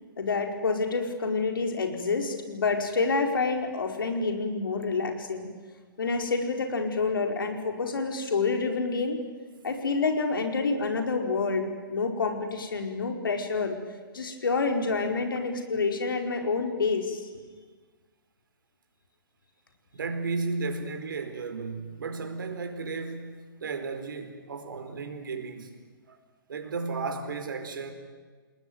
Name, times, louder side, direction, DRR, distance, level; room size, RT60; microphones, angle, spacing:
voice 1, 0.2-5.5 6.0-9.2 9.6-13.8 14.1-17.3, left 4 dB, 70° left, 4 dB, 4.6 m, -28 dB
voice 2, 19.9-25.7 26.1-26.2 26.5-27.9, right 4 dB, 65° right, 7 dB, 4.5 m, -34 dB
29.0 x 20.0 x 9.4 m, 1.4 s
figure-of-eight pair, 120°, 12 cm